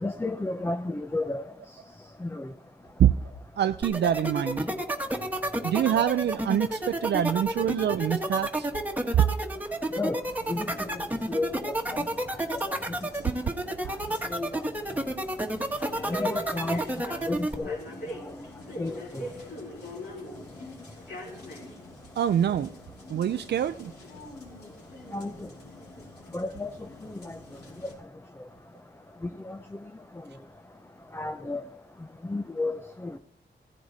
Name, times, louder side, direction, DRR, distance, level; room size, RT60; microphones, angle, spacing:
voice 1, 0.0-1.4 2.2-2.5 10.0-10.2 10.5-10.9 11.3-12.1 14.3-14.5 16.0-17.8 18.8-19.3 25.1-25.3 26.3-26.7 27.0-27.4 27.8-27.9 29.4-29.6 31.1-31.6 32.3-33.2, left 2 dB, 15° left, 0.7 m, -32 dB
voice 2, 3.6-4.7 5.6-8.7 9.2-9.3 22.2-22.7 23.1-23.9, right 10 dB, 75° right, 0.5 m, -25 dB
sound 1, 3.8-17.5, right 1 dB, 10° right, 1.5 m, -30 dB
sound 2, 10.3-27.9, left 1 dB, 70° left, 4.9 m, -44 dB
16.0 x 14.5 x 4.1 m
wide cardioid pair, 115°, 18 cm